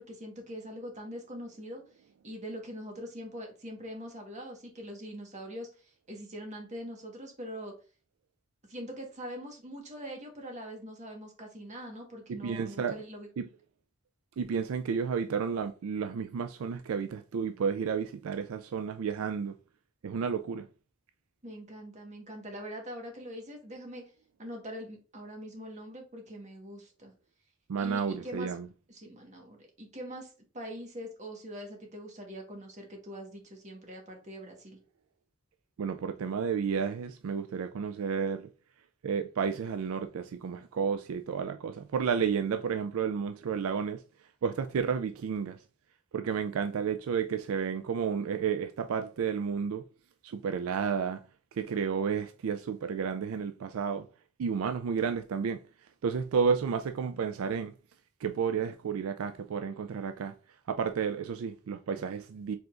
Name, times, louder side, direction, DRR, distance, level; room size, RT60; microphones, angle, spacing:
voice 1, 0.0-1.8 2.2-7.7 8.7-13.3 21.4-24.1 24.4-27.1 27.8-28.5 28.9-34.8, equal, 35° right, 1.4 m, -43 dB
voice 2, 12.3-13.0 13.4-13.5 14.4-19.5 20.0-20.7 27.7-28.7 35.8-38.5 39.0-44.0 44.4-45.6 46.1-49.8 50.2-51.2 51.5-54.1 54.4-55.6 56.0-57.7 58.2-60.3 60.7-62.6, right 6 dB, 75° right, 0.4 m, -31 dB
4.8 x 3.8 x 2.5 m
head